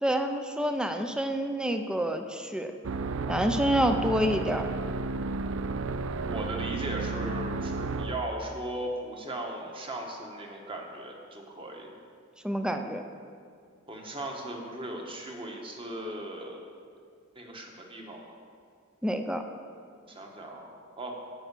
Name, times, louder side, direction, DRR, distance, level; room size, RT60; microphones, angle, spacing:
voice 1, 0.0-2.7 3.3-4.7 12.4-13.0 19.0-19.4, equal, 5° right, 6 dB, 0.5 m, -28 dB
sound 1, 2.8-8.3, right 3 dB, 70° right, 0.4 m, -32 dB
voice 2, 6.2-11.9 13.9-16.6 17.3-18.2 20.1-21.2, right 1 dB, 25° right, 1 dB, 1.4 m, -37 dB
10.5 x 5.7 x 8.3 m, 2.2 s
head